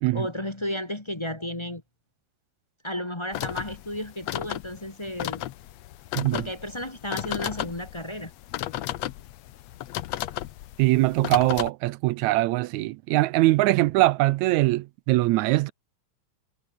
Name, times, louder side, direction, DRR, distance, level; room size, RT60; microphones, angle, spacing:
voice 1, 0.1-1.8 2.8-5.4 6.3-8.3, left 1 dB, 20° left, 0.8 m, -33 dB
sound 1, 3.3-11.7, left 14 dB, 70° left, 1.9 m, -34 dB
voice 2, 10.8-15.7, right 18 dB, 80° right, 1.8 m, -22 dB
omnidirectional pair, 3.4 m